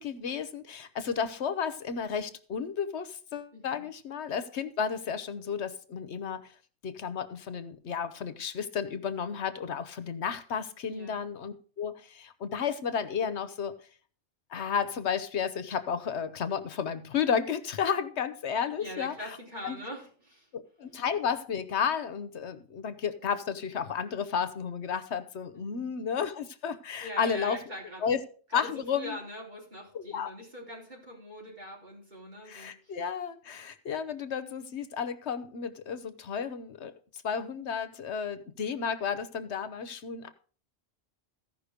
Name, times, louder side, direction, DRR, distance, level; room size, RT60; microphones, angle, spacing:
voice 1, 0.0-6.4 6.8-13.8 14.5-19.4 19.6-19.8 20.5-27.6 28.0-28.2 28.5-29.2 29.9-30.3 32.5-36.9 37.2-40.3, left 7 dB, 85° left, 13 dB, 1.2 m, -32 dB
voice 2, 3.5-3.9 10.9-11.2 18.8-20.5 25.5-25.9 27.0-28.2 28.5-33.0, equal, 45° right, -3 dB, 4.6 m, -43 dB
15.0 x 5.6 x 5.1 m, 0.42 s
omnidirectional pair, 1.1 m